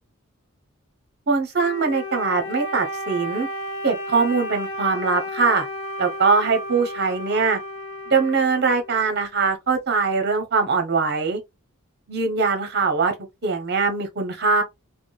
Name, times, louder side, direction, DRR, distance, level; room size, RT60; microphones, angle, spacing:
voice 1, 1.3-3.5 3.8-5.7 6.0-7.6 8.1-11.4 12.1-13.1 13.4-14.6, right 4 dB, 50° right, 0.8 m, -22 dB
Wind instrument woodwind instrument, 1.6-9.1, left 1 dB, 65° left, 0.6 m, -33 dB
3.6 x 2.1 x 2.3 m
head